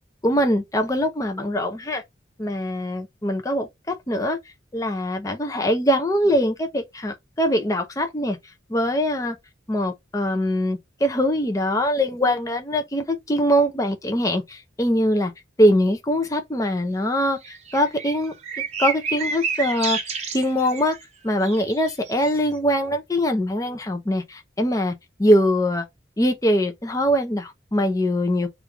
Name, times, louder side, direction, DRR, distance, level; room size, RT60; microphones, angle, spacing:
voice 1, 0.2-2.0 2.4-4.4 4.7-8.4 8.7-9.4 9.7-15.3 15.6-18.3 18.8-20.0 20.3-21.0 21.2-24.9 25.2-25.9 26.2-28.5, equal, 15° left, 0.5 m, -22 dB
sound 1, 17.4-21.0 21.4-22.4, right 5 dB, 35° right, 0.7 m, -29 dB
3.3 x 2.5 x 4.4 m
head